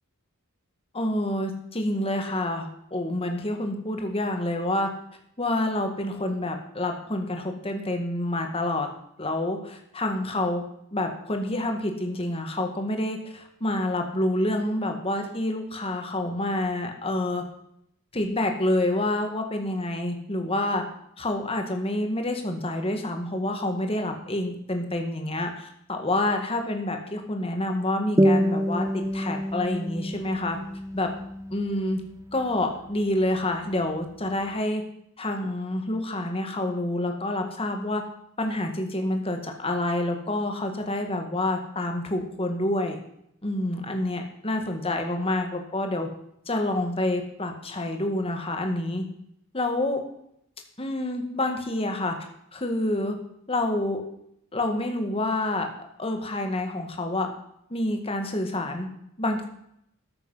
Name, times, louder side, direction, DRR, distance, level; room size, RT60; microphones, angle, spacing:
voice 1, 0.9-4.9 5.4-8.9 9.2-10.6 10.9-17.4 18.1-20.8 21.2-28.8 29.1-30.6 30.9-31.1 31.5-32.0 32.3-34.8 35.2-38.0 38.4-43.0 43.4-46.1 46.5-49.0 49.5-50.0 50.8-52.1 52.5-53.2 53.5-54.0 54.5-55.7 56.0-57.3 57.7-58.9 59.2-59.5, left 1 dB, 30° left, 4 dB, 1.8 m, -28 dB
sound 1, 28.2-33.2, equal, 15° right, 0.6 m, -27 dB
13.5 x 10.0 x 5.7 m, 0.75 s
head